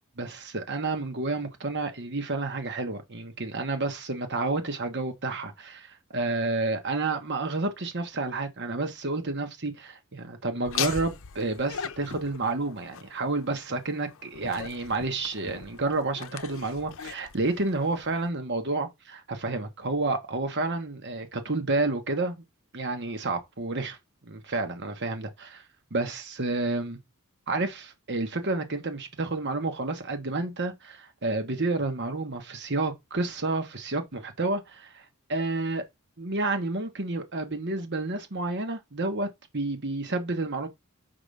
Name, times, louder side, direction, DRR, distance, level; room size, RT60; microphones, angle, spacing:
voice 1, 0.2-22.4 22.7-23.9 24.3-25.6 25.9-27.0 27.5-35.8 36.2-39.3 39.5-40.7, right 2 dB, 50° right, 1.4 m, -30 dB
Laughter, 10.6-18.3, left 8 dB, 60° left, 0.7 m, -39 dB
5.9 x 5.3 x 3.5 m
head